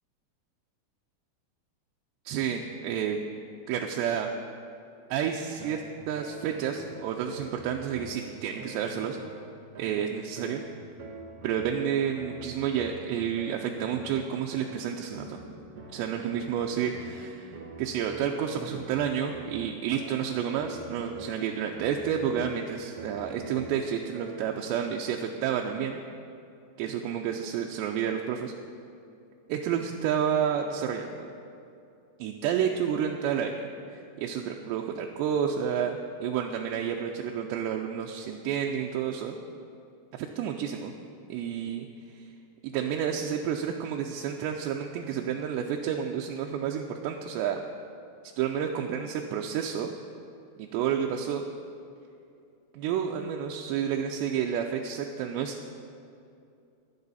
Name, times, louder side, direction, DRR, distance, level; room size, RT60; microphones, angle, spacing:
voice 1, 2.3-3.2 3.7-4.3 5.1-9.2 9.8-10.6 11.4-15.4 15.9-26.0 26.8-28.5 29.5-31.3 32.2-39.4 40.1-40.9 41.3-41.9 42.1-42.3 42.6-47.6 48.4-49.9 50.6-51.4 52.7-55.7, right 8 dB, 90° right, 2 dB, 2.8 m, -30 dB
sound 1, 5.6-24.7, right 3 dB, 70° right, 1.4 m, -44 dB
23.0 x 7.8 x 4.1 m, 2.6 s
omnidirectional pair, 4.8 m